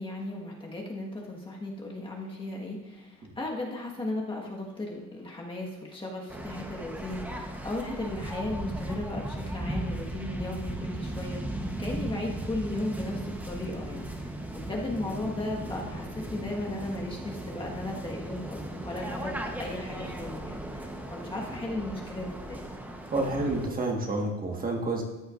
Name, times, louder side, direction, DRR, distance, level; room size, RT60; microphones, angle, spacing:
voice 1, 0.0-11.4 11.8-22.6, left 2 dB, 15° left, -2 dB, 1.5 m, -36 dB
Waves surf, 6.3-23.7, right 1 dB, 5° right, 1.0 m, -37 dB
voice 2, 23.1-25.0, right 2 dB, 30° right, 1 dB, 1.5 m, -29 dB
14.0 x 9.9 x 2.5 m, 1.1 s
cardioid pair, 145°, 30 cm